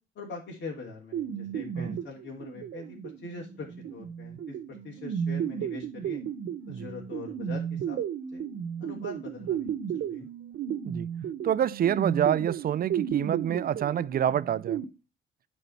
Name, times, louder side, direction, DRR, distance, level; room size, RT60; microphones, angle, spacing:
voice 1, 0.1-6.2 6.7-8.0 8.3-8.4 8.8-10.3, left 3 dB, 65° left, 2.9 m, -42 dB
sound 1, 1.1-14.8, right 8 dB, 75° right, 1.1 m, -34 dB
voice 2, 11.4-14.8, right 10 dB, 50° right, 0.5 m, -27 dB
9.8 x 4.2 x 5.6 m
cardioid pair, 90°, 20 cm